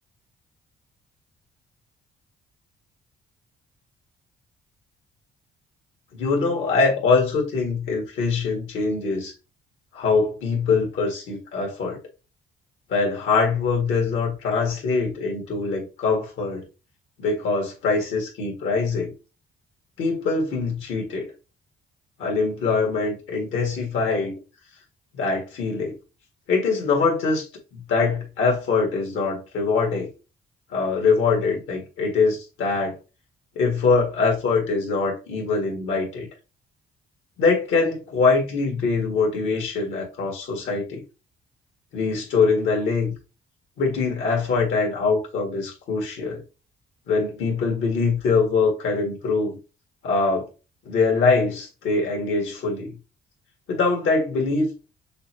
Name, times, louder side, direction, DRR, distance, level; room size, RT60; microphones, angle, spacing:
voice 1, 6.1-9.3 9.9-12.0 12.9-16.7 17.2-19.1 20.0-21.3 22.2-24.4 25.1-26.0 26.5-27.5 27.7-30.1 30.7-33.0 33.6-36.3 37.4-41.0 41.9-43.1 43.8-46.4 47.1-49.6 50.0-50.5 50.9-52.9 53.7-54.7, left 4 dB, 80° left, 2.2 m, -23 dB
6.5 x 2.3 x 2.9 m
cardioid pair, 90°, 20 cm